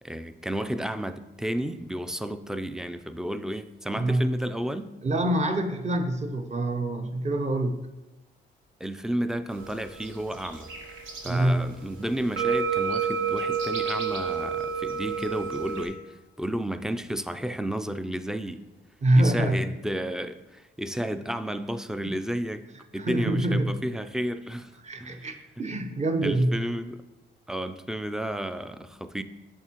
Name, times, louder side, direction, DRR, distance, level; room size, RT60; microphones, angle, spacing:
voice 1, 0.0-4.9 8.8-10.7 11.2-18.7 19.2-24.7 25.0-25.4 26.2-27.0 27.5-29.2, right 1 dB, 5° right, 0.3 m, -32 dB
voice 2, 3.9-4.3 5.0-7.8 11.2-11.7 19.0-19.6 22.0-22.1 23.0-23.7 24.8-26.6, right 1 dB, 35° right, 0.8 m, -25 dB
sound 1, 9.5-15.9, right 6 dB, 75° right, 1.2 m, -30 dB
10.0 x 3.6 x 3.0 m
cardioid pair, 90°, 20 cm